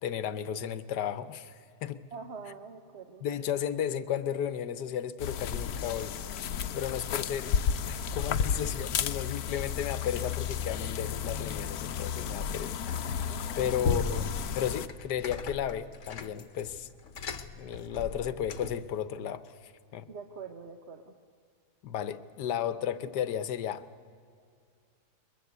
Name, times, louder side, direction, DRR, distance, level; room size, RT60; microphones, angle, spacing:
voice 1, 0.0-2.0 3.2-6.2 6.7-7.5 7.9-13.3 13.6-16.9 17.6-20.1 21.8-23.9, left 9 dB, 85° left, 15 dB, 1.5 m, -34 dB
voice 2, 2.1-3.2 13.3-13.9 20.1-21.0, right 5 dB, 45° right, 5 dB, 1.2 m, -44 dB
sound 1, 5.2-14.9, left 7 dB, 70° left, 1.2 m, -33 dB
sound 2, 12.9-13.4 13.8-18.9, left 4 dB, 50° left, 1.3 m, -37 dB
22.0 x 22.0 x 8.1 m, 2.3 s
omnidirectional pair, 1.7 m